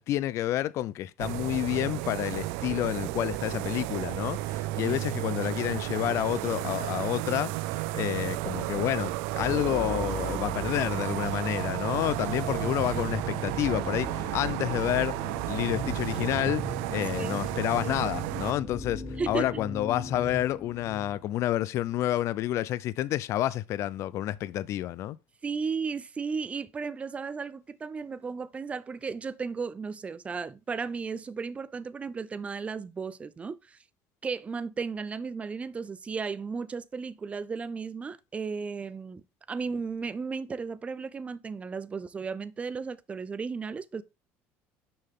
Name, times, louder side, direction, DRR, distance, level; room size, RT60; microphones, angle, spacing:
voice 1, 0.0-7.5 7.9-15.2 15.5-16.6 16.9-25.2, left 13 dB, 60° left, 0.5 m, -29 dB
sound 1, 1.2-18.5, right 17 dB, 85° right, 0.4 m, -33 dB
sound 2, 9.4-21.3, left 1 dB, 20° left, 3.2 m, -39 dB
voice 2, 19.2-19.5 25.4-33.8 34.2-39.2 39.5-44.0, right 5 dB, 20° right, 0.5 m, -34 dB
6.8 x 5.6 x 3.6 m
cardioid pair, 115°, 6 cm